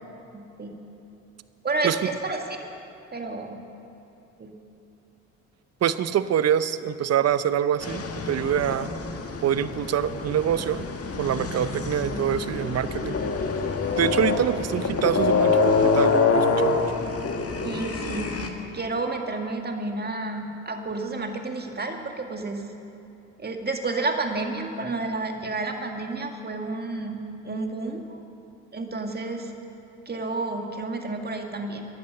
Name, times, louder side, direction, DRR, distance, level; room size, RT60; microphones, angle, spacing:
voice 1, 0.3-0.8 1.6-2.4 3.1-3.7 4.4-4.5 17.6-18.4 18.7-22.7 23.4-28.2 28.7-29.5 30.1-31.9, right 3 dB, 30° right, 4 dB, 2.0 m, -30 dB
voice 2, 5.8-8.9 9.4-10.9 11.2-13.2 14.0-16.8, right 9 dB, 50° right, 14 dB, 0.7 m, -25 dB
sound 1, 7.8-18.5, left 4 dB, 45° left, 1.7 m, -26 dB
15.5 x 11.0 x 6.7 m, 2.9 s
hypercardioid pair, 55°, 34 cm